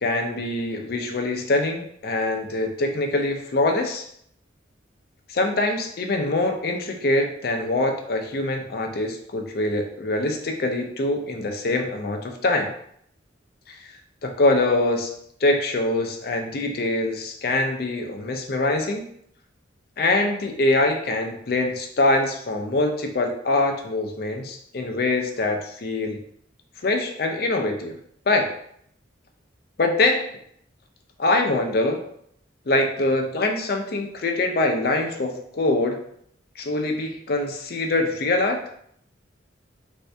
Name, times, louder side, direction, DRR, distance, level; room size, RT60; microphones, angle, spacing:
voice 1, 0.0-4.1 5.3-12.7 13.7-15.1 15.4-19.1 20.0-26.2 26.8-28.0 28.3-28.5 29.8-30.3 31.2-32.0 32.7-36.0 36.6-38.6, left 2 dB, 50° left, 4 dB, 0.5 m, -24 dB
3.4 x 2.6 x 3.3 m, 0.69 s
head